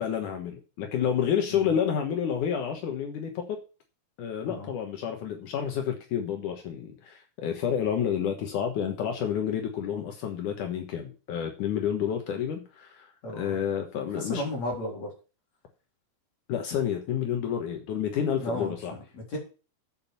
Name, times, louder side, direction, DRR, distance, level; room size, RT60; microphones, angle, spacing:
voice 1, 0.0-3.6 4.2-13.1 13.3-14.4 16.5-18.9, left 8 dB, 75° left, 3 dB, 2.8 m, -29 dB
voice 2, 13.2-13.6 14.1-15.1 18.4-19.4, left 1 dB, 55° left, -2 dB, 4.9 m, -34 dB
8.7 x 7.5 x 7.1 m, 0.35 s
omnidirectional pair, 3.8 m